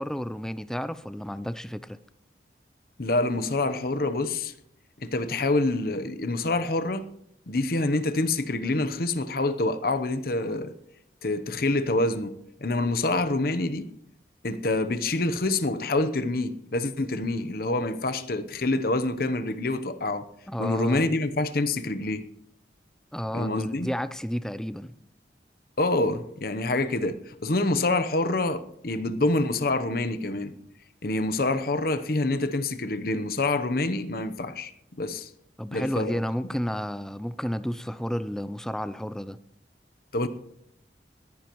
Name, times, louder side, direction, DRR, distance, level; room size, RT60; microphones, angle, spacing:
voice 1, 0.0-2.0 20.5-21.1 23.1-25.0 35.6-39.4, equal, 5° left, 0.4 m, -31 dB
voice 2, 3.0-4.5 5.0-7.1 7.5-10.7 11.2-12.4 12.6-13.9 14.4-20.3 20.6-22.2 23.3-23.9 25.8-30.6 31.0-35.3 35.7-36.2 40.1-40.3, left 2 dB, 55° left, 0.9 m, -26 dB
20.5 x 14.5 x 3.1 m
head